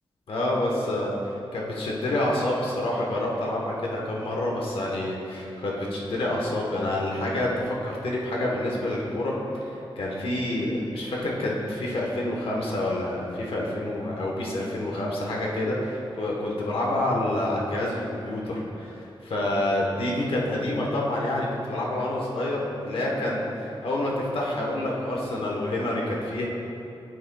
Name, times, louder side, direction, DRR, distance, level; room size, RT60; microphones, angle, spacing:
voice 1, 0.3-26.5, left 1 dB, 80° left, -3 dB, 1.2 m, -28 dB
9.1 x 8.8 x 2.3 m, 2.8 s
wide cardioid pair, 155°, 9 cm